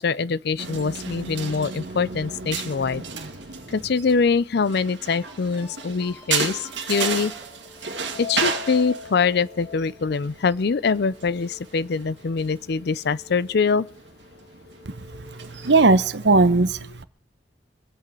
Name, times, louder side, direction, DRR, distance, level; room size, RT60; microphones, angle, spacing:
voice 1, 0.0-3.0 3.7-7.3 8.2-13.9, left 5 dB, 65° left, 0.5 m, -24 dB
sound 1, 0.6-16.1, right 5 dB, 90° right, 2.2 m, -34 dB
sound 2, 1.5-15.9, left 4 dB, 30° left, 2.5 m, -44 dB
voice 2, 15.6-17.0, right 3 dB, 70° right, 0.9 m, -17 dB
24.0 x 8.3 x 4.9 m
head